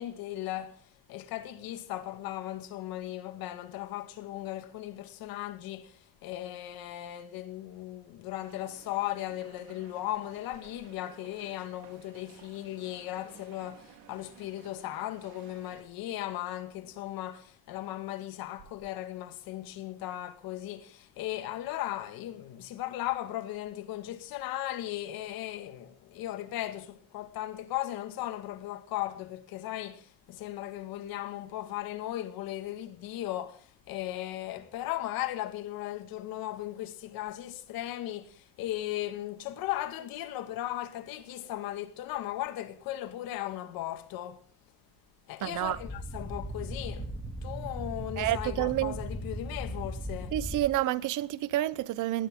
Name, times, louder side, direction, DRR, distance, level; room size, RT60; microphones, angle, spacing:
voice 1, 0.0-44.5 45.3-50.3, left 14 dB, 80° left, 2.1 m, -37 dB
sound 1, 8.4-15.8, right 8 dB, 80° right, 3.7 m, -56 dB
voice 2, 45.4-45.8 48.2-49.0 50.3-52.3, right 15 dB, 60° right, 0.9 m, -29 dB
sound 2, 45.5-50.6, equal, ahead, 2.5 m, -38 dB
20.5 x 18.0 x 3.8 m
cardioid pair, 165°, 35 cm